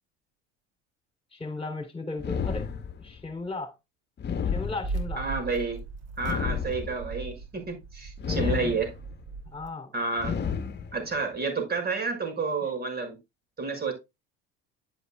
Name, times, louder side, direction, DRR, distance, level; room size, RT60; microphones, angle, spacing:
voice 1, 1.3-2.7 3.0-3.7 4.5-5.2 8.3-8.7 9.5-9.9, left 3 dB, 20° left, 3.4 m, -36 dB
sound 1, 2.2-3.3 4.2-5.3 6.2-7.2 8.2-9.2 10.2-11.2, left 7 dB, 35° left, 1.5 m, -31 dB
sound 2, 4.8-9.7, right 4 dB, 55° right, 2.9 m, -38 dB
voice 2, 5.1-5.8 6.2-8.9 9.9-10.4 10.9-13.2 13.6-13.9, right 4 dB, 30° right, 6.6 m, -30 dB
11.0 x 8.1 x 2.4 m
supercardioid pair, 85°, 30 cm